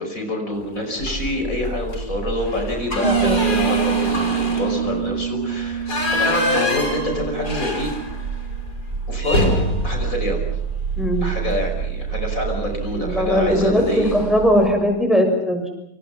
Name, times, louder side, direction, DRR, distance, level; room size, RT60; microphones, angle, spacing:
voice 1, 0.0-5.9 6.2-8.0 9.1-9.6 9.8-10.4 11.2-14.2, left 1 dB, 55° left, 3 dB, 5.8 m, -26 dB
sound 1, 1.0-1.4 1.8-2.0 2.3-8.4 8.7-8.8 9.2-11.3 12.7-13.0 13.3-13.5 13.8-14.4, left 2 dB, 85° left, 6.0 m, -26 dB
sound 2, 1.0-14.7, right 6 dB, 65° right, 4.9 m, -30 dB
voice 2, 3.0-3.4 11.0-11.3 13.0-15.7, equal, ahead, 4 dB, 6.4 m, -19 dB
sound 3, 3.0-8.6, right 9 dB, 35° right, 1.9 m, -25 dB
28.5 x 27.5 x 5.8 m, 0.78 s
omnidirectional pair, 1.7 m